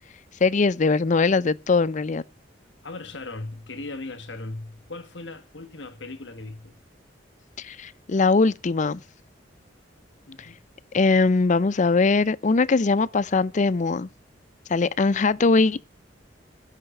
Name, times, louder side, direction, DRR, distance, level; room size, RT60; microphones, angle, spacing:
voice 1, 0.4-2.2 7.6-9.0 10.9-14.1 14.7-15.9, left 4 dB, 40° left, 0.5 m, -21 dB
voice 2, 2.8-6.8 10.3-10.6, left 2 dB, 75° left, 1.7 m, -38 dB
11.0 x 6.4 x 8.3 m
head